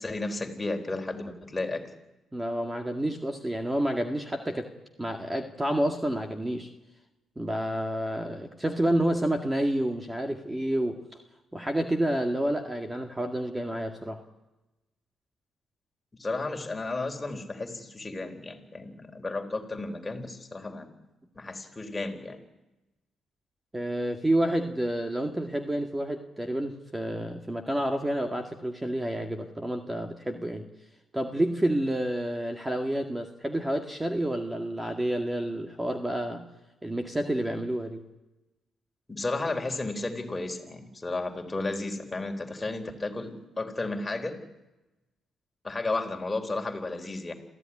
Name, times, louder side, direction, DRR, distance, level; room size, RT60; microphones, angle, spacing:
voice 1, 0.0-1.8 16.2-20.9 21.4-22.4 39.1-44.4 45.6-47.3, left 2 dB, 20° left, 4 dB, 4.0 m, -33 dB
voice 2, 2.3-4.7 5.0-6.7 7.4-11.2 11.5-14.2 23.7-30.7 31.1-36.5 36.8-38.1, right 1 dB, 15° right, 5 dB, 2.0 m, -29 dB
27.0 x 15.5 x 10.0 m, 1.0 s
cardioid pair, 90°, 0 cm